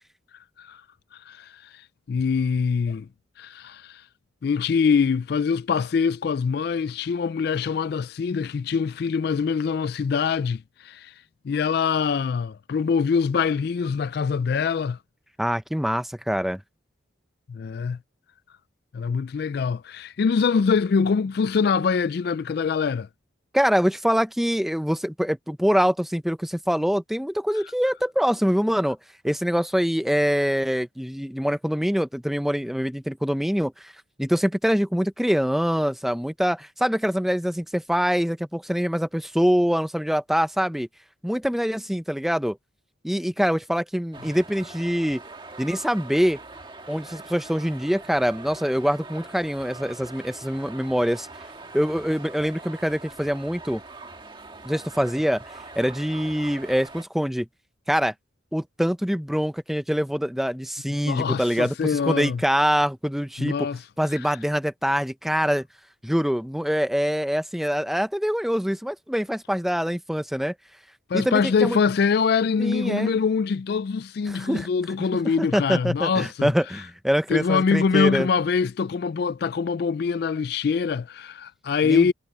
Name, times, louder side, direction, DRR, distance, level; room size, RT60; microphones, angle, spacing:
voice 1, 1.1-1.8 2.1-3.1 3.4-4.0 4.4-11.1 11.4-15.0 17.5-18.0 18.9-23.1 61.0-62.4 63.4-63.8 64.2-64.3 71.1-76.5 77.3-82.1, left 5 dB, 50° left, 0.3 m, -24 dB
voice 2, 15.4-16.6 23.5-29.0 29.2-33.9 34.2-40.9 41.2-42.6 43.0-45.2 45.6-46.4 46.9-51.3 51.7-53.8 54.6-55.4 55.8-57.5 57.9-58.1 58.5-63.7 64.0-65.7 66.0-70.5 71.1-71.8 72.6-73.1 74.3-74.7 75.4-78.3 81.8-82.1, equal, ahead, 0.5 m, -24 dB
sound 1, 44.1-57.0, right 3 dB, 25° right, 1.7 m, -43 dB
head